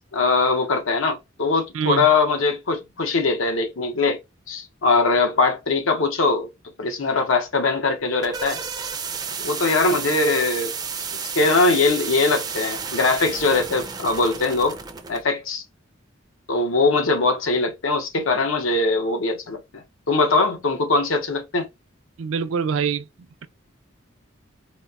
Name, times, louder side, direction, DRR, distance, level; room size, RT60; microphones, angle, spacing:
voice 1, 0.0-4.2 4.5-6.5 6.8-8.6 9.4-10.7 11.3-14.8 15.1-15.6 16.5-21.7, left 3 dB, 90° left, 0.9 m, -21 dB
voice 2, 1.7-2.1 22.2-23.1, right 6 dB, 85° right, 0.4 m, -24 dB
sound 1, 7.9-15.2, right 6 dB, 20° right, 0.4 m, -32 dB
4.1 x 2.0 x 2.3 m
head